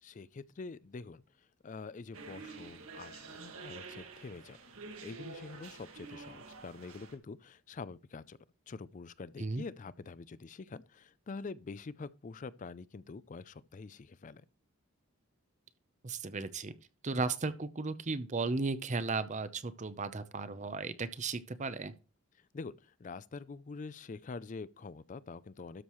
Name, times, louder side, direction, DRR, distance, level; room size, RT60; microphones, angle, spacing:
voice 1, 0.0-1.2 1.6-4.6 5.0-8.4 8.7-14.4 22.5-25.8, left 4 dB, 35° left, 0.4 m, -46 dB
sound 1, 2.1-7.2, right 4 dB, 75° right, 1.8 m, -48 dB
voice 2, 16.0-16.7 17.0-21.9, right 3 dB, 35° right, 0.7 m, -35 dB
12.5 x 6.4 x 3.1 m
head